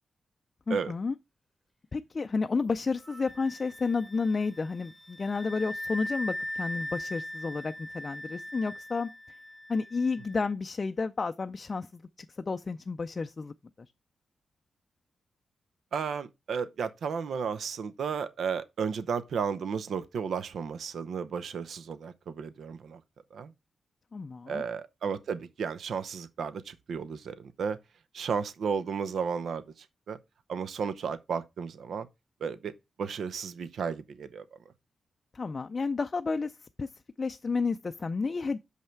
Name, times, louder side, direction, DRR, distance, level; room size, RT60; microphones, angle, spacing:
voice 1, 0.7-1.1 1.9-9.1 9.7-12.0 12.5-13.5 24.1-24.6 35.3-36.5 36.8-36.9 37.2-38.6, left 4 dB, 40° left, 0.4 m, -31 dB
Wind instrument woodwind instrument, 3.0-10.5, left 1 dB, ahead, 1.0 m, -40 dB
voice 2, 15.9-23.0 23.3-23.5 24.5-27.8 28.1-30.2 30.5-32.1 32.4-34.4, right 6 dB, 80° right, 0.7 m, -33 dB
6.4 x 5.5 x 4.5 m
cardioid pair, 95°, 0 cm